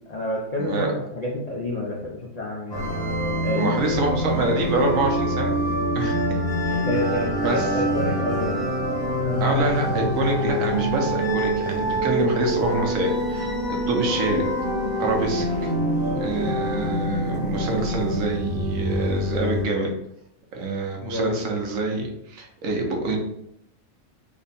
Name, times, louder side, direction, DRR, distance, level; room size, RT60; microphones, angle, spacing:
voice 1, 0.1-2.9 3.4-4.0 5.6-5.8 6.8-8.6 9.2-9.4 16.4-16.5 21.0-21.4, left 1 dB, 60° left, -3 dB, 0.4 m, -29 dB
voice 2, 0.6-0.9 3.6-5.6 5.9-6.8 7.4-7.7 9.4-14.4 15.0-15.7 16.2-19.9 20.5-23.2, right 2 dB, 75° right, 1 dB, 1.2 m, -26 dB
sound 1, 2.7-19.7, equal, 20° left, 0.8 m, -25 dB
3.6 x 2.2 x 4.0 m, 0.77 s
omnidirectional pair, 1.4 m